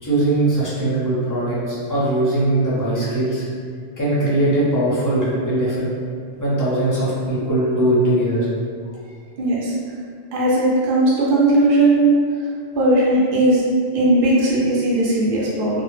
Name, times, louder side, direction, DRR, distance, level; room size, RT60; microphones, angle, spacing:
voice 1, 0.0-3.4 4.0-5.9 6.4-8.5, right 1 dB, 25° left, -9 dB, 0.4 m, -20 dB
voice 2, 9.4-9.7 10.3-12.1 12.7-13.6 13.9-15.8, right 2 dB, 60° right, -6 dB, 0.6 m, -17 dB
2.1 x 2.0 x 3.0 m, 2.2 s
omnidirectional pair, 1.1 m